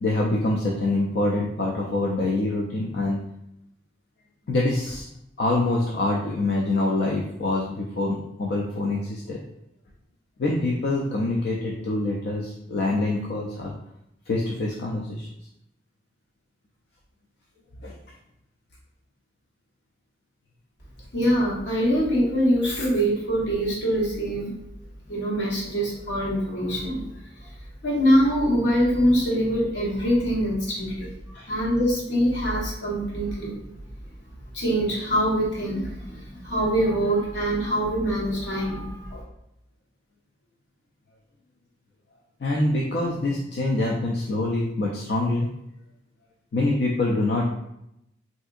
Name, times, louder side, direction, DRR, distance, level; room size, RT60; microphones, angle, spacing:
voice 1, 0.0-3.2 4.5-5.1 5.4-9.4 10.4-13.7 14.3-15.3 17.8-17.9 31.3-31.5 42.4-45.5 46.5-47.4, left 2 dB, 60° left, -2 dB, 0.4 m, -25 dB
voice 2, 21.1-24.5 25.1-27.0 27.8-31.1 31.5-33.5 34.5-39.2, equal, 75° left, -6 dB, 1.1 m, -24 dB
3.5 x 2.7 x 2.4 m, 0.82 s
head